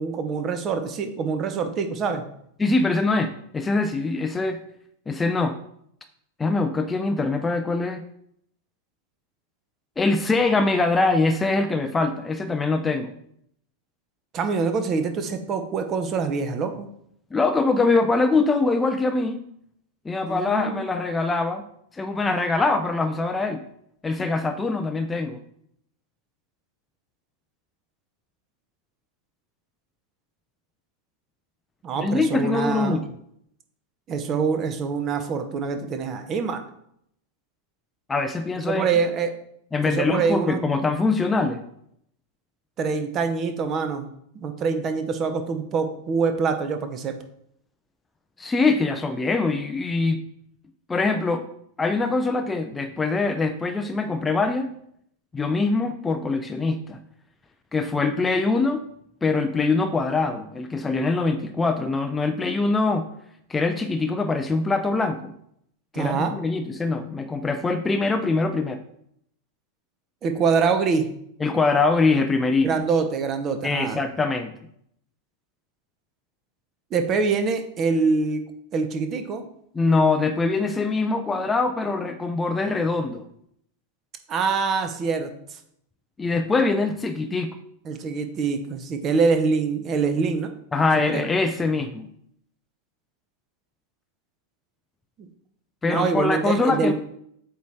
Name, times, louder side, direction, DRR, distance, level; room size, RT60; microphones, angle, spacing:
voice 1, 0.0-2.2 14.3-16.9 20.3-20.9 31.8-33.0 34.1-36.6 38.7-39.3 39.8-40.6 42.8-44.1 44.4-47.2 65.9-66.3 70.2-71.1 72.6-74.0 76.9-78.4 78.7-79.4 84.3-85.3 87.9-90.5 91.1-91.2 95.2-95.3 95.8-96.9, right 5 dB, 30° right, 7 dB, 0.8 m, -25 dB
voice 2, 2.6-4.6 5.1-5.6 6.4-8.0 10.0-13.1 17.3-19.4 20.0-21.6 21.9-23.6 24.0-25.4 32.0-33.0 38.1-38.9 39.7-41.6 48.4-50.2 50.9-51.4 51.8-54.7 55.3-57.0 57.7-58.8 59.2-63.1 63.5-65.3 65.9-68.8 71.4-72.7 73.6-74.5 79.7-83.2 86.2-87.6 90.7-92.1 95.8-96.9, left 3 dB, 15° left, 7 dB, 0.5 m, -23 dB
8.1 x 3.1 x 4.7 m, 0.71 s
figure-of-eight pair, 90°, 0 cm